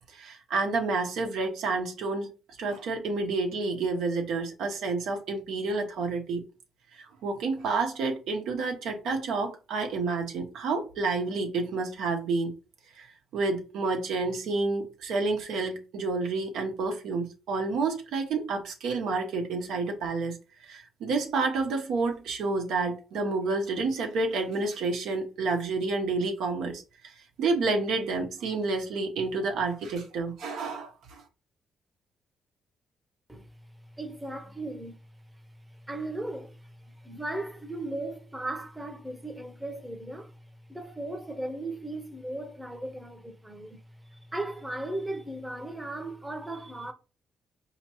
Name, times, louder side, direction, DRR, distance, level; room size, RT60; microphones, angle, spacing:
voice 1, 0.1-2.3 2.6-6.4 7.2-12.5 13.0-13.1 13.3-20.4 20.7-26.8 27.4-31.2, right 3 dB, 80° right, 0.9 m, -29 dB
voice 2, 34.0-34.9 35.9-40.3 40.7-43.8 44.1-46.9, right 1 dB, 10° right, 0.7 m, -37 dB
4.2 x 2.8 x 3.0 m
cardioid pair, 90°, 0 cm